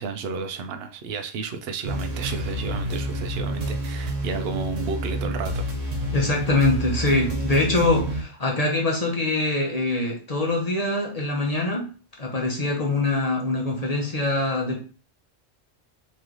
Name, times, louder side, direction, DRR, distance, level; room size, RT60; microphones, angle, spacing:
voice 1, 0.0-5.7, right 5 dB, 60° right, 8 dB, 0.7 m, -32 dB
sound 1, 1.8-8.2, right 1 dB, 80° right, 1.2 m, -29 dB
voice 2, 6.1-11.9 12.2-14.8, left 2 dB, 35° left, 0 dB, 0.8 m, -24 dB
3.1 x 3.1 x 3.7 m, 0.37 s
omnidirectional pair, 1.3 m